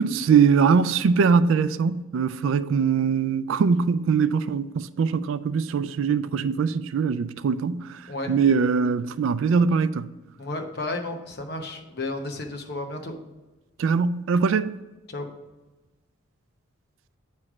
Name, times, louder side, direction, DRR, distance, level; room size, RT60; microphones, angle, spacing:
voice 1, 0.0-8.0 8.3-10.1 13.8-14.7, right 5 dB, 70° right, 0.3 m, -22 dB
voice 2, 10.4-13.2 15.1-15.3, left 2 dB, 50° left, 0.8 m, -32 dB
8.6 x 3.2 x 4.8 m
head